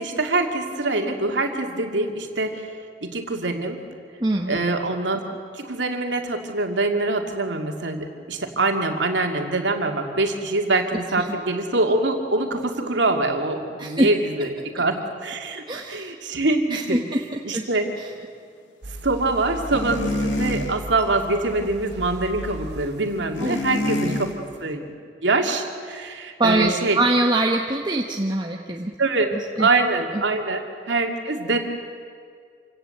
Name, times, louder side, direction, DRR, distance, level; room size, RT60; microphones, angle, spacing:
voice 1, 0.0-2.7 3.0-3.8 4.5-5.2 5.5-15.0 15.2-17.0 17.4-17.9 19.0-24.3 24.6-24.9 25.2-27.0 29.0-29.3 29.6-30.6 30.9-31.6, right 2 dB, 80° right, 3 dB, 2.5 m, -24 dB
voice 2, 4.2-4.6 11.2-11.3 13.8-14.1 15.7-16.1 16.7-17.6 18.0-18.1 23.4-23.6 24.1-24.2 26.4-28.9 29.6-29.7, right 2 dB, 25° right, 0 dB, 1.1 m, -23 dB
sound 1, 18.8-24.6, right 1 dB, 60° right, 1.0 m, -38 dB
sound 2, 19.7-20.7 23.4-24.3, left 1 dB, 85° left, 2.4 m, -26 dB
27.0 x 17.5 x 7.9 m, 2.2 s
head